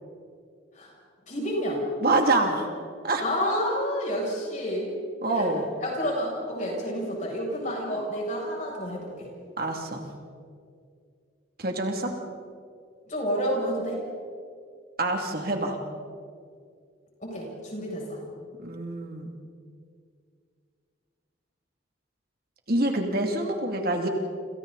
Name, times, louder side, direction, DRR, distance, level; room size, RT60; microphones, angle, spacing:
voice 1, 1.3-1.8 3.2-4.9 5.3-5.5 5.8-9.3 13.1-14.0 17.2-18.2, equal, 40° left, -2 dB, 7.5 m, -29 dB
voice 2, 2.0-2.7 3.0-3.2 5.2-5.7 9.6-10.0 11.6-12.1 15.0-15.8 18.6-19.3 22.7-24.1, right 2 dB, 50° right, 2 dB, 2.7 m, -26 dB
29.5 x 28.0 x 4.2 m, 2.2 s
head